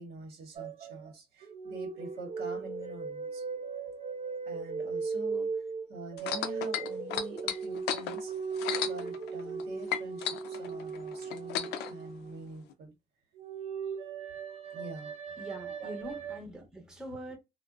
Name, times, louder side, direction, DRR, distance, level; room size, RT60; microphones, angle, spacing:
voice 1, 0.0-3.5 4.4-8.3 8.8-12.9 14.7-15.1 15.8-15.9, right 2 dB, 70° right, 1.0 m, -46 dB
sound 1, 0.5-1.1 1.4-12.5 13.4-16.4, right 5 dB, 40° right, 0.5 m, -38 dB
sound 2, 6.2-9.6 9.9-11.9 12.7-12.8, left 10 dB, 80° left, 0.4 m, -34 dB
voice 2, 15.4-17.4, equal, 5° right, 0.8 m, -43 dB
2.5 x 2.2 x 2.3 m
cardioid pair, 110°, 17 cm